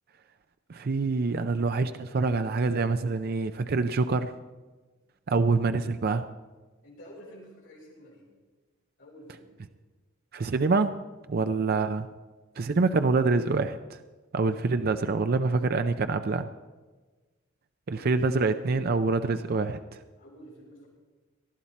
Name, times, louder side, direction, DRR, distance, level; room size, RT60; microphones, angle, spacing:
voice 1, 0.7-4.3 5.3-6.2 10.3-10.9 11.3-12.1 12.6-14.0 14.3-16.5 17.9-20.0, right 3 dB, 45° right, 9 dB, 0.5 m, -26 dB
voice 2, 6.8-8.3 9.0-9.5 11.4-11.6 17.9-18.2 20.2-20.9, equal, 65° left, -7 dB, 5.6 m, -50 dB
19.0 x 12.5 x 4.2 m, 1.3 s
head